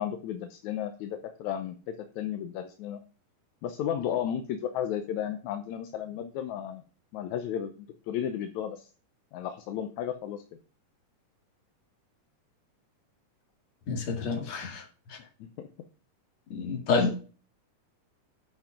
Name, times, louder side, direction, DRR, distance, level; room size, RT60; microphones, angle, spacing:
voice 1, 0.0-3.0 3.6-6.8 7.1-8.9 9.3-10.4 15.2-15.7 16.9-17.2, left 9 dB, 70° left, 2.0 m, -34 dB
voice 2, 13.9-14.8 16.5-17.2, left 4 dB, 55° left, 3.1 m, -28 dB
8.9 x 5.6 x 5.8 m
omnidirectional pair, 3.7 m